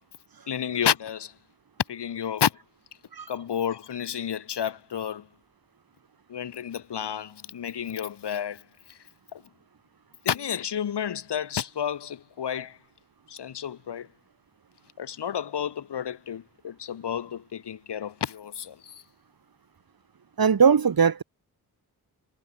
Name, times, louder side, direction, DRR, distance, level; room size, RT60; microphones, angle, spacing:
voice 1, 0.5-1.3 1.9-2.5 3.3-5.2 6.3-8.6 9.3-9.4 10.2-12.8 13.3-14.1 15.0-18.9, left 9 dB, 85° left, 7.9 m, -31 dB
voice 2, 20.4-21.2, right 6 dB, 60° right, 4.1 m, -19 dB
cardioid pair, 55°, 40 cm